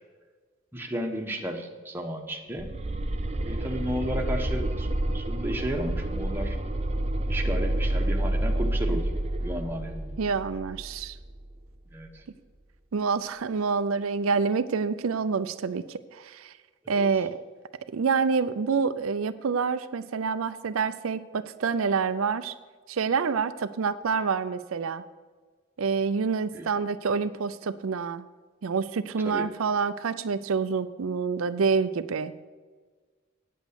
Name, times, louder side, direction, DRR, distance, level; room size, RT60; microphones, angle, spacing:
voice 1, 0.7-2.7 3.4-4.9 5.1-6.6 7.3-9.1 9.4-10.2 11.9-12.2 16.9-17.1 26.5-26.7 29.2-29.4, equal, 10° right, 1 dB, 1.1 m, -33 dB
sound 1, 2.6-11.5, right 1 dB, 30° right, 0.6 m, -29 dB
voice 2, 10.2-11.2 12.9-16.5 16.9-17.4 17.9-22.5 22.9-25.0 25.8-28.2 28.6-32.4, right 5 dB, 80° right, 11 dB, 0.5 m, -27 dB
9.2 x 8.2 x 6.8 m, 1.4 s
head